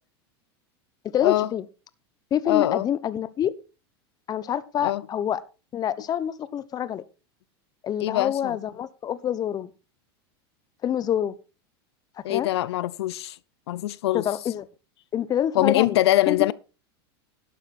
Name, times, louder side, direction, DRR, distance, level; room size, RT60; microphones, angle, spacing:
voice 1, 1.1-1.6 2.3-3.5 4.3-5.4 5.7-7.0 7.8-9.7 10.8-11.4 12.3-12.5 14.1-14.7 15.1-16.0 16.3-16.5, left 10 dB, 30° left, 0.9 m, -26 dB
voice 2, 2.5-2.9 4.8-5.0 8.0-8.6 12.2-13.4 13.7-14.2 15.5-16.5, left 15 dB, 85° left, 0.6 m, -23 dB
12.0 x 9.0 x 4.2 m
supercardioid pair, 125°, 13 cm